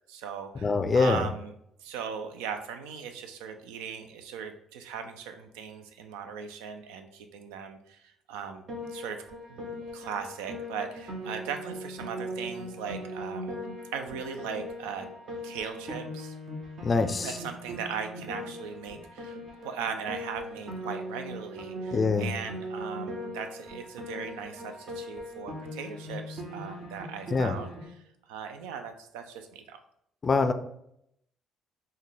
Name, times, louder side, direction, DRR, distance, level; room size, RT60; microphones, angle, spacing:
voice 1, 0.0-1.5 1.8-8.6 8.9-9.2 9.5-13.6 13.9-15.1 15.4-16.3 17.2-27.7 28.3-29.8, right 7 dB, 85° right, 7 dB, 0.3 m, -38 dB
voice 2, 0.6-1.3 16.8-17.4 21.9-22.3 27.3-27.6 30.2-30.5, left 4 dB, 40° left, 9 dB, 0.4 m, -24 dB
Piano, 8.7-27.9, equal, 55° right, 0.8 m, -39 dB
3.6 x 2.2 x 3.2 m, 0.75 s
hypercardioid pair, 60°, 0 cm